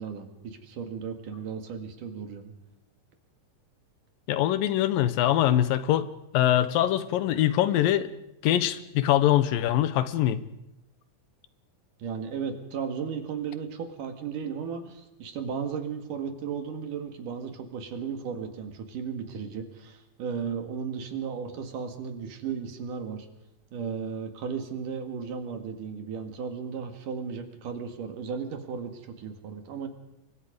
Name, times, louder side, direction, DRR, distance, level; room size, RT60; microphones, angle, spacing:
voice 1, 0.0-2.5 12.0-23.3 23.7-29.9, right 6 dB, 70° right, 6 dB, 3.6 m, -35 dB
voice 2, 4.3-6.1 6.3-8.1 8.4-10.4, left 12 dB, 85° left, 13 dB, 2.8 m, -23 dB
28.5 x 23.0 x 5.2 m, 0.85 s
omnidirectional pair, 3.9 m